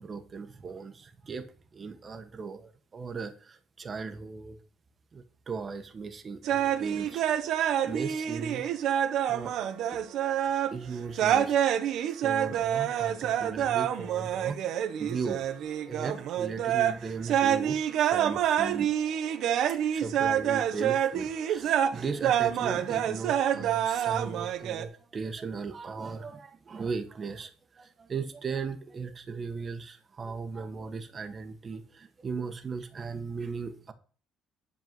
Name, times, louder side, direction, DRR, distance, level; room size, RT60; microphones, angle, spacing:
voice 1, 0.0-4.6 5.1-7.2 7.8-8.7 9.3-10.0 10.7-11.6 12.2-15.4 15.9-17.8 18.1-18.9 19.9-33.9, right 5 dB, 35° right, 1.5 m, -37 dB
sound 1, 6.4-10.7 11.1-17.0 17.2-24.8, right 10 dB, 70° right, 1.2 m, -27 dB
11.0 x 4.7 x 7.6 m
cardioid pair, 105°, 0 cm